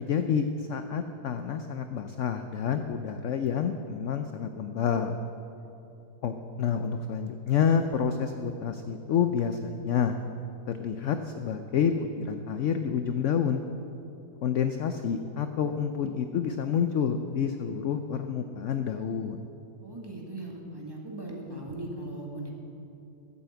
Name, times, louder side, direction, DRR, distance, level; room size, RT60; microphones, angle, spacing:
voice 1, 0.0-5.2 6.2-10.2 10.7-13.6 14.4-19.4, left 7 dB, 65° left, 8 dB, 0.8 m, -28 dB
voice 2, 19.8-22.5, right 1 dB, 15° right, -2 dB, 1.9 m, -38 dB
13.0 x 8.5 x 7.8 m, 2.8 s
omnidirectional pair, 1.7 m